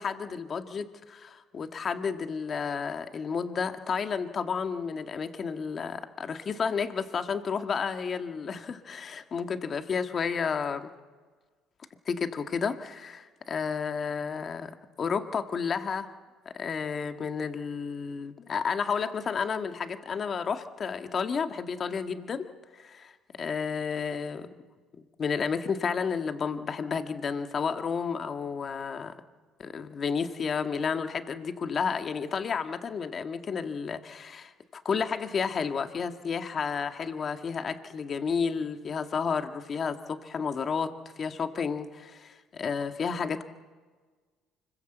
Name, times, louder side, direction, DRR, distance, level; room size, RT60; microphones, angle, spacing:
voice 1, 0.0-10.9 12.0-14.7 15.0-16.1 16.5-24.5 25.2-29.1 29.6-40.9 41.2-43.4, left 6 dB, 40° left, 8 dB, 1.7 m, -31 dB
25.0 x 21.5 x 8.0 m, 1.4 s
supercardioid pair, 90°, 0 cm